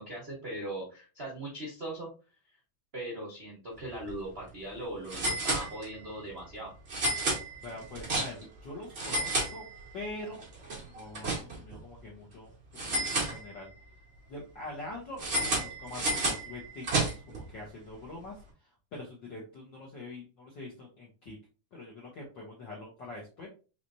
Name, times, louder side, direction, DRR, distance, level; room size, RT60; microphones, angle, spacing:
voice 1, 0.0-2.1 2.9-6.7, right 1 dB, 85° right, -5 dB, 0.5 m, -39 dB
sound 1, 3.9-4.1 4.4-4.5 5.1-6.1 6.9-8.6 8.9-10.1 10.4-11.8 12.8-13.9 15.2-17.4, right 2 dB, 40° right, 0.9 m, -32 dB
voice 2, 7.6-9.6 9.9-10.5 10.8-12.5 12.8-13.7 14.3-18.3 18.9-21.4 21.7-23.5, left 2 dB, 70° left, -3 dB, 1.0 m, -44 dB
4.8 x 3.1 x 2.6 m, 0.33 s
omnidirectional pair, 3.5 m